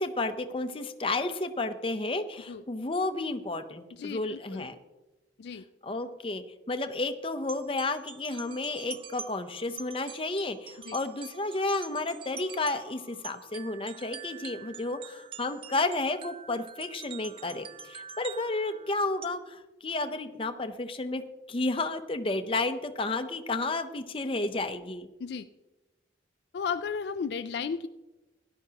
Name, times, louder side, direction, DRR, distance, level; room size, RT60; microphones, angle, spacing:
voice 1, 0.0-4.7 5.8-21.2 21.5-25.1, left 2 dB, 30° left, 8 dB, 0.7 m, -32 dB
voice 2, 3.9-4.7 5.4-5.7 10.8-11.0 25.2-25.5 26.5-27.9, left 6 dB, 65° left, 10 dB, 0.3 m, -34 dB
sound 1, 7.5-19.3, right 7 dB, 30° right, 0.4 m, -46 dB
16.5 x 11.0 x 2.9 m, 1.1 s
head